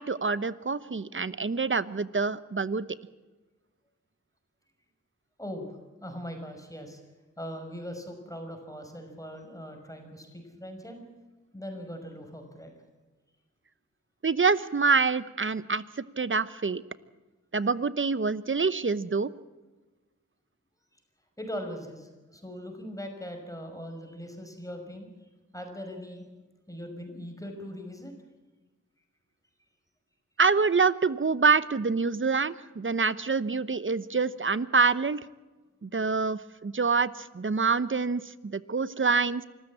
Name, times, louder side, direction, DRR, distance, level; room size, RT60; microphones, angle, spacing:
voice 1, 0.0-2.8 14.2-16.8 17.5-19.3 30.4-35.2 35.8-39.4, right 4 dB, 40° right, 16 dB, 1.0 m, -26 dB
voice 2, 5.4-7.0 7.4-11.0 11.5-12.7 21.4-25.3 25.5-26.2 26.7-28.1, equal, 10° left, 4 dB, 5.8 m, -40 dB
25.5 x 14.5 x 8.6 m, 1.2 s
cardioid pair, 50°, 31 cm